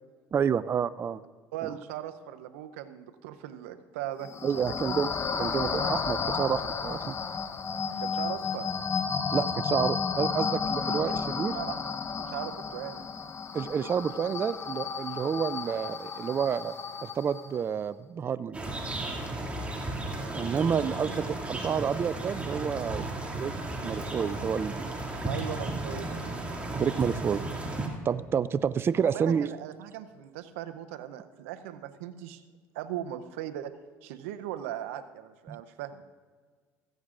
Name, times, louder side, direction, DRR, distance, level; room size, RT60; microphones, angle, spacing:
voice 1, 0.3-1.2 1.6-1.7 4.4-5.1 5.4-7.2 9.3-11.5 13.5-16.7 17.0-18.6 20.3-23.1 23.4-23.5 23.8-24.9 26.7-27.4 27.7-29.5 35.5-35.6, right 7 dB, 35° right, 16 dB, 0.4 m, -29 dB
voice 2, 1.5-4.3 8.0-8.7 11.0-11.1 11.5-13.1 25.2-26.3 29.0-32.4 32.7-33.7 34.0-36.0, right 12 dB, 90° right, 10 dB, 0.7 m, -39 dB
sound 1, 4.2-17.6, left 5 dB, 35° left, 0.9 m, -32 dB
sound 2, 18.5-27.9, right 2 dB, 15° right, 2.4 m, -34 dB
15.5 x 14.5 x 2.5 m, 1.5 s
supercardioid pair, 80°, 7 cm